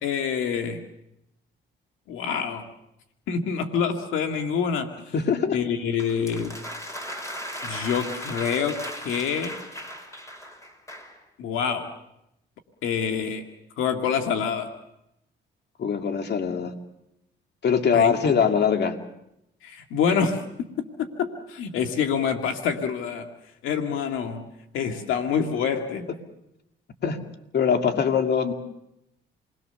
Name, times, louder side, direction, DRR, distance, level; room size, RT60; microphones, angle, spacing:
voice 1, 0.0-0.8 2.1-2.6 3.3-4.9 5.5-6.5 7.6-9.5 11.4-11.9 12.8-13.4 13.8-14.7 17.9-18.1 19.6-20.4 21.0-23.3 23.6-24.5 24.7-26.1, left 7 dB, 90° left, 5 dB, 2.0 m, -26 dB
voice 2, 5.1-5.6 15.8-16.7 17.6-19.0 27.0-27.2 27.5-28.5, left 6 dB, 60° left, 6 dB, 2.4 m, -22 dB
sound 1, 6.0-11.2, equal, 15° left, 6.0 m, -37 dB
28.5 x 21.5 x 6.8 m, 0.82 s
cardioid pair, 90°, 20 cm